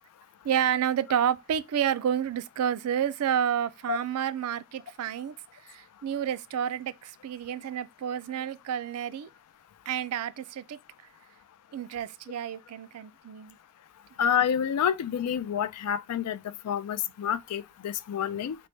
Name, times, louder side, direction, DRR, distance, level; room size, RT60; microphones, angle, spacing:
voice 1, 0.4-5.3 5.6-9.3 9.9-10.8 11.7-13.6, right 9 dB, 80° right, 0.3 m, -30 dB
voice 2, 14.2-16.4 16.7-18.6, left 8 dB, 90° left, 0.3 m, -28 dB
4.2 x 2.1 x 3.1 m
head